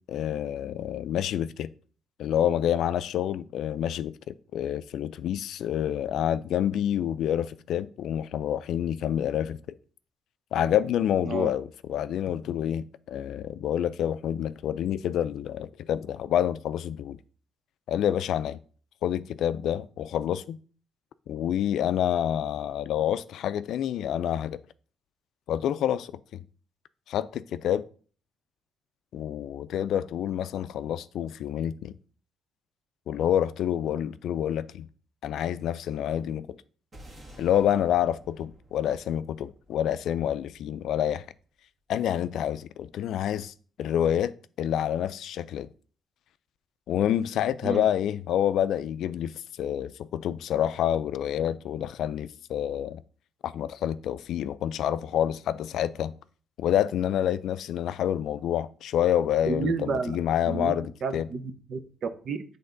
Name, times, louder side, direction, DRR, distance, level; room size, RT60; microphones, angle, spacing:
voice 1, 0.1-1.7 2.2-9.6 10.5-17.2 17.9-18.6 19.0-20.6 21.3-24.6 25.5-26.1 27.1-27.9 29.1-31.9 33.1-34.9 35.2-36.5 37.4-41.2 41.9-45.7 46.9-49.3 49.6-53.0 53.4-56.1 56.6-61.3, left 10 dB, 75° left, 0.3 m, -28 dB
sound 1, 36.9-41.4, right 1 dB, 35° right, 2.1 m, -52 dB
voice 2, 59.4-60.2 60.5-62.4, right 5 dB, 60° right, 0.7 m, -31 dB
7.9 x 3.4 x 3.8 m
cardioid pair, 90°, 0 cm